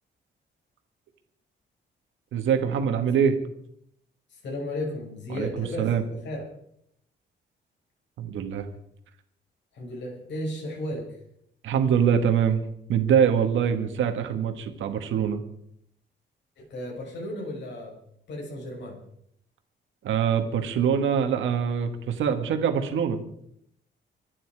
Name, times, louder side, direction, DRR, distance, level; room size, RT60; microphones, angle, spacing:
voice 1, 2.3-3.4 5.3-6.0 8.2-8.7 11.6-12.6 12.9-15.4 20.0-23.2, right 7 dB, 80° right, 6 dB, 2.0 m, -24 dB
voice 2, 4.3-5.9 6.2-6.4 9.7-11.2 16.6-17.9 18.3-18.9, left 1 dB, 65° left, -2 dB, 6.8 m, -34 dB
25.5 x 10.0 x 4.9 m, 0.73 s
cardioid pair, 125°, 20 cm